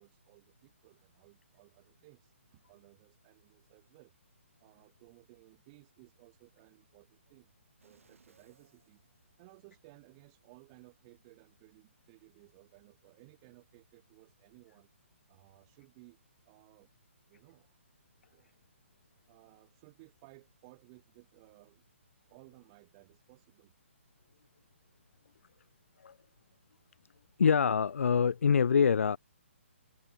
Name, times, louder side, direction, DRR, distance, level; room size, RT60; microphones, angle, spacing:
voice 1, 0.0-4.1 4.6-7.5 7.8-9.0 9.4-14.9 15.3-16.2 16.4-16.9 17.3-17.8 18.3-18.6 19.3-21.8 22.3-23.7, right 26 dB, 25° right, 1.6 m, -60 dB
sound 1, 7.8-9.9 10.4-10.5, right 5 dB, 85° right, 4.8 m, -67 dB
voice 2, 27.4-29.2, left 6 dB, 85° left, 0.3 m, -25 dB
hypercardioid pair, 165°, 7 cm